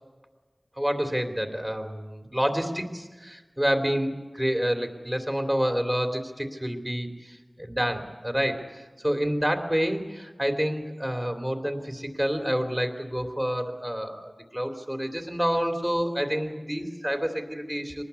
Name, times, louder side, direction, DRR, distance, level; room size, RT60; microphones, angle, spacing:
voice 1, 0.8-18.0, equal, 15° right, 6 dB, 3.0 m, -28 dB
24.0 x 20.0 x 8.3 m, 1.3 s
wide cardioid pair, 50°, 0 cm